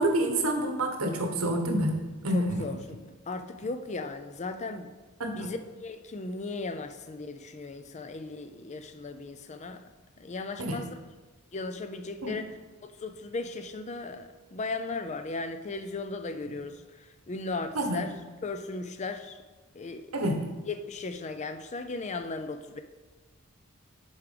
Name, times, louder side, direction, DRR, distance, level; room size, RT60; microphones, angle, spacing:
voice 1, 0.0-2.6 5.2-5.5 10.6-10.8 12.2-12.3 17.7-18.1 20.1-20.5, right 1 dB, 90° right, 4 dB, 1.2 m, -28 dB
voice 2, 2.3-4.9 5.4-9.8 10.2-11.0 11.5-18.1 18.4-19.4 19.7-20.1 20.7-22.8, left 3 dB, 35° left, 9 dB, 0.4 m, -37 dB
6.9 x 4.8 x 5.1 m, 1.3 s
head